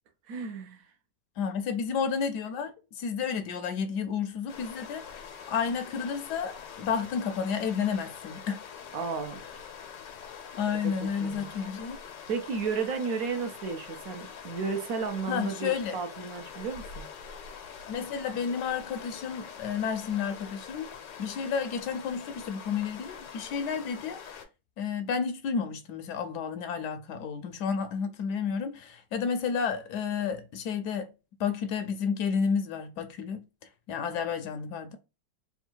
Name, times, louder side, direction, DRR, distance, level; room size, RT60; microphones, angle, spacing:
voice 1, 0.3-0.9 8.9-9.4 11.2-11.7 12.3-17.1, right 5 dB, 65° right, 1.0 m, -33 dB
voice 2, 1.4-8.6 10.6-12.0 15.3-16.0 17.9-20.9 21.2-24.2 24.8-31.1 31.4-33.5 33.9-35.0, left 6 dB, 75° left, 1.1 m, -31 dB
sound 1, 4.5-24.5, left 7 dB, 90° left, 1.5 m, -44 dB
3.6 x 2.3 x 4.4 m
omnidirectional pair, 1.9 m